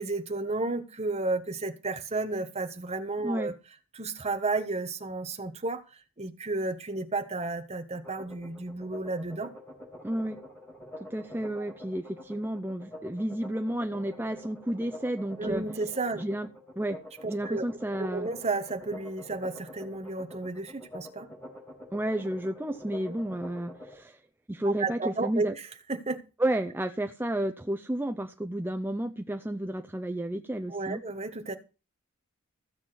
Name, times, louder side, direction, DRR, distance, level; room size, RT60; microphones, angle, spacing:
voice 1, 0.0-3.6 3.9-5.8 6.2-9.5 11.6-11.7 15.4-16.2 17.2-17.6 18.0-21.3 24.8-26.2 30.7-31.5, right 3 dB, 30° right, 1.4 m, -32 dB
voice 2, 3.2-3.5 10.0-10.4 11.0-15.6 16.2-16.5 16.8-17.0 17.3-18.3 21.9-24.2 24.5-25.5 26.4-31.0, right 1 dB, 10° right, 0.6 m, -31 dB
sound 1, 7.9-23.9, left 1 dB, 10° left, 5.1 m, -46 dB
15.5 x 7.3 x 6.0 m
head